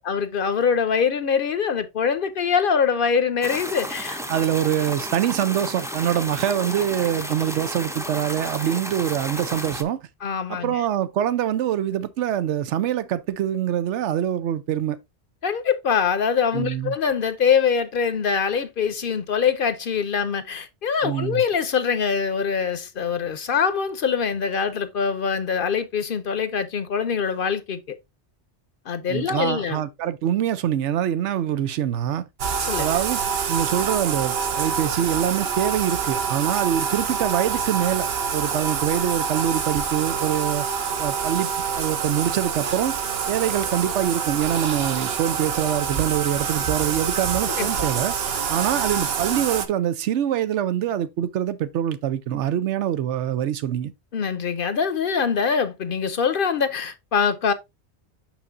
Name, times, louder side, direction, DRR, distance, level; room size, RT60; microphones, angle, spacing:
voice 1, 0.0-4.2 10.2-10.8 15.4-28.0 28.9-29.8 32.7-32.9 47.4-47.8 54.1-57.5, left 6 dB, 55° left, 0.7 m, -23 dB
sound 1, 3.4-9.8, equal, 5° right, 0.4 m, -33 dB
voice 2, 4.3-10.0 10.5-15.0 16.5-16.9 21.0-21.4 29.1-32.2 32.8-33.2 33.5-40.7 41.0-43.0 43.3-48.2 48.5-53.9, right 10 dB, 90° right, 0.9 m, -24 dB
Bathtub (filling or washing), 32.4-49.7, right 6 dB, 65° right, 1.0 m, -26 dB
6.3 x 6.1 x 2.5 m
omnidirectional pair, 1.2 m